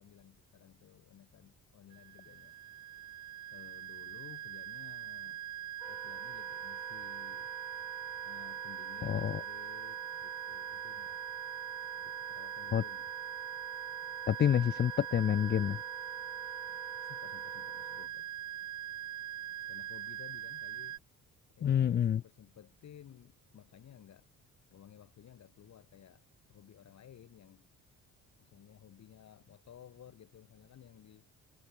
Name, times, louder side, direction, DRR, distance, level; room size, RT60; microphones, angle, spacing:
voice 1, 0.0-2.5 3.5-5.4 5.9-7.5 8.2-11.2 11.9-13.1 17.0-18.3 19.7-21.2 21.5-24.3 24.7-27.7 28.4-31.3, left 10 dB, 65° left, 6.0 m, -56 dB
sound 1, 1.9-21.0, right 12 dB, 70° right, 2.0 m, -42 dB
Wind instrument woodwind instrument, 5.8-18.1, right 1 dB, 5° right, 5.1 m, -50 dB
voice 2, 9.0-9.4 12.7-12.8 14.3-15.8 21.6-22.2, left 9 dB, 35° left, 0.5 m, -28 dB
cardioid pair, 90°, 30 cm